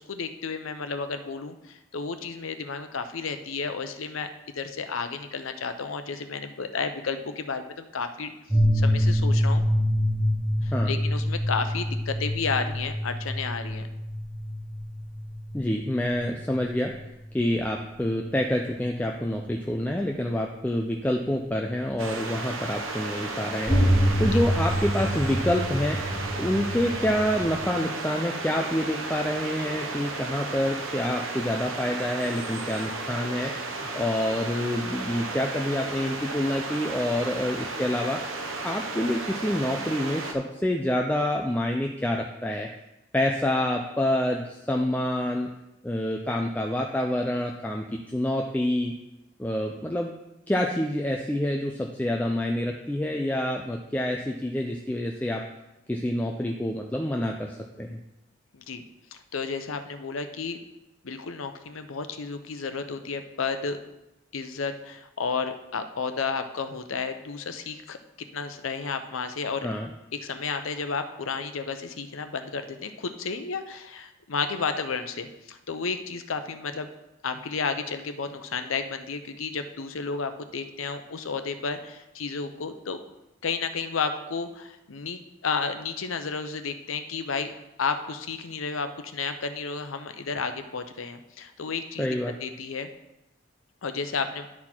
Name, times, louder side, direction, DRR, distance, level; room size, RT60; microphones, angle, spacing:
voice 1, 0.0-4.3 4.5-8.3 8.7-9.6 10.6-13.9 24.3-24.4 58.5-58.8 59.1-60.6 61.0-63.8 64.3-68.0 68.3-69.7 70.1-76.9 77.2-83.0 83.4-87.5 87.8-92.1 92.4-92.9 93.8-94.5, left 5 dB, 90° left, 8 dB, 0.7 m, -32 dB
sound 1, 8.5-17.8 18.8-18.9 23.7-27.6, equal, 20° right, 2.6 m, -26 dB
voice 2, 15.5-16.9 17.3-33.5 33.8-38.2 38.6-42.7 43.1-45.5 45.8-48.9 49.4-50.1 50.5-55.4 55.9-58.0 69.6-69.9 92.0-92.3, left 1 dB, 10° left, 1 dB, 0.4 m, -27 dB
sound 2, 22.0-40.3, right 3 dB, 85° right, 0.9 m, -34 dB
11.0 x 4.2 x 4.4 m, 0.94 s
head